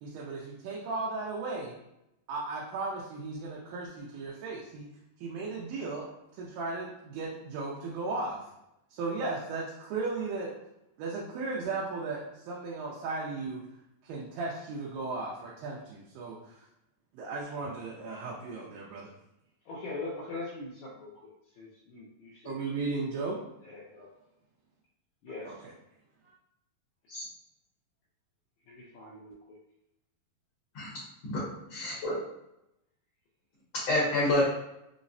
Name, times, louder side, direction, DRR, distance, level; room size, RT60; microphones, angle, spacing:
voice 1, 0.0-1.7 2.3-4.9 5.2-6.1 6.4-8.4 8.9-10.5 11.0-13.6 14.0-16.6 17.1-19.1 22.5-23.4 25.4-25.7, right 3 dB, 85° right, -4 dB, 2.4 m, -36 dB
voice 2, 19.7-21.3 21.6-22.6 23.6-24.1 25.2-25.5 28.7-29.6, left 3 dB, 80° left, -5 dB, 1.6 m, -42 dB
voice 3, 31.2-32.2 33.9-34.4, left 1 dB, 65° left, -7 dB, 1.6 m, -28 dB
5.5 x 2.1 x 2.5 m, 0.87 s
omnidirectional pair, 4.0 m